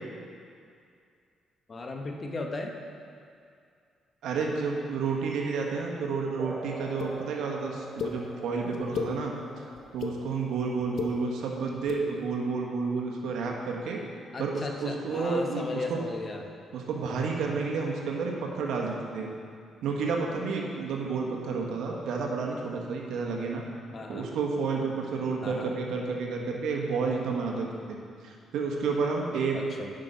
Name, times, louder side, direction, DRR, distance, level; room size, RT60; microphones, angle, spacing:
voice 1, 1.7-2.7 14.3-16.5 23.9-24.3 25.4-25.8 29.5-29.9, left 3 dB, 40° left, 2 dB, 1.0 m, -36 dB
voice 2, 4.2-9.3 9.9-14.0 14.4-16.0 16.7-19.3 19.8-23.6 24.1-28.0 28.2-29.6, right 4 dB, 80° right, 0 dB, 1.3 m, -30 dB
sound 1, 6.4-14.4, right 1 dB, 35° right, 1.7 m, -45 dB
sound 2, 7.0-7.1 8.0-8.1 8.7-9.1 9.8-10.1 10.8-11.1 11.8-12.0, left 7 dB, 70° left, 0.8 m, -32 dB
9.1 x 5.7 x 5.2 m, 2.3 s
cardioid pair, 90°, 0 cm